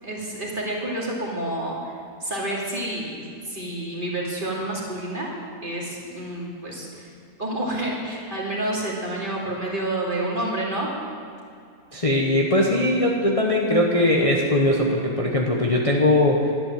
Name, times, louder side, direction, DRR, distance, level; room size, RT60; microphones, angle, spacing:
voice 1, 0.0-1.9 2.2-5.3 5.6-7.1 7.4-10.9, right 1 dB, 35° right, -3 dB, 2.8 m, -29 dB
voice 2, 11.9-16.5, left 1 dB, 25° left, -1 dB, 1.1 m, -20 dB
12.0 x 11.0 x 7.7 m, 2.4 s
omnidirectional pair, 1.6 m